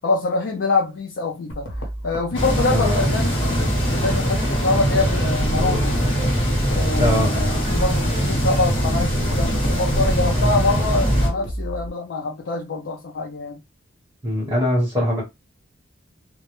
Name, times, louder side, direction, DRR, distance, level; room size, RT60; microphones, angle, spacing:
voice 1, 0.0-6.0 6.7-13.6, left 3 dB, 65° left, 0.4 m, -25 dB
sound 1, 1.5-11.9, right 1 dB, 90° left, 0.8 m, -31 dB
sound 2, 2.3-11.3, equal, 25° left, 0.9 m, -22 dB
voice 2, 2.7-3.1 7.0-7.3 14.2-15.2, equal, 20° right, 0.9 m, -21 dB
2.0 x 2.0 x 3.0 m
head